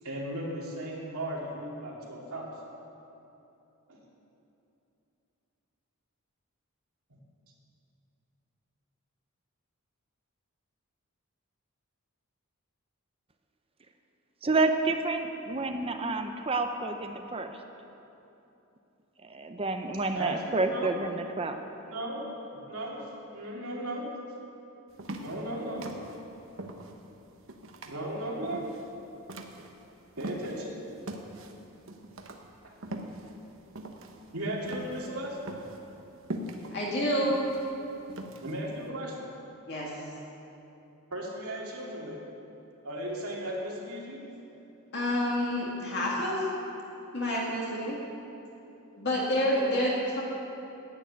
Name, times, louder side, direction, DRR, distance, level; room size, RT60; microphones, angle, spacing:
voice 1, 0.0-2.5 3.9-4.0 20.1-20.9 21.9-22.2 22.5-23.0 23.3-24.1 25.2-25.9 27.8-28.7 30.2-30.8 32.6-32.7 34.3-35.4 38.4-39.2 41.1-42.2 42.8-44.2, right 1 dB, 80° right, -3 dB, 2.6 m, -36 dB
voice 2, 14.4-17.5 19.2-21.6, right 3 dB, 25° right, 6 dB, 0.6 m, -29 dB
sound 1, 24.9-30.7 31.0-38.8, right 1 dB, 60° right, 1.1 m, -41 dB
voice 3, 36.7-37.4 39.7-39.9 44.9-46.4 47.1-48.0 49.0-50.2, equal, 50° left, -4 dB, 2.2 m, -28 dB
11.0 x 9.0 x 9.2 m, 2.9 s
head